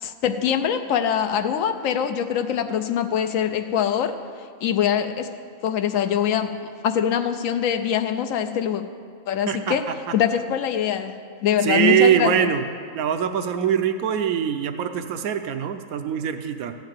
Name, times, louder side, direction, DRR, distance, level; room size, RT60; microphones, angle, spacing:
voice 1, 0.0-4.2 4.6-5.3 5.6-6.5 6.8-8.8 9.3-9.8 10.1-11.1 11.4-12.5, left 9 dB, 70° left, 7 dB, 1.1 m, -23 dB
voice 2, 11.6-12.6 12.9-16.8, right 9 dB, 85° right, 8 dB, 1.1 m, -22 dB
14.5 x 5.7 x 9.0 m, 2.1 s
omnidirectional pair, 1.5 m